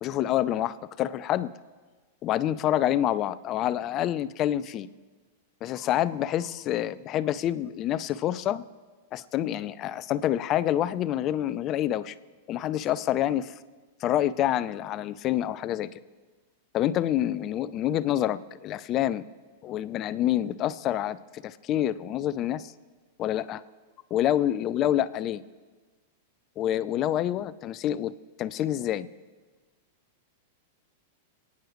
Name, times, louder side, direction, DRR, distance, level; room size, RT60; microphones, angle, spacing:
voice 1, 0.0-1.5 2.2-4.9 5.6-8.6 9.1-12.1 12.5-13.5 14.0-16.0 16.7-19.2 19.6-22.7 23.2-23.6 24.1-25.4 26.6-29.1, left 12 dB, 40° left, 16 dB, 0.5 m, -27 dB
27.5 x 9.5 x 3.1 m, 1.4 s
hypercardioid pair, 115°, 0 cm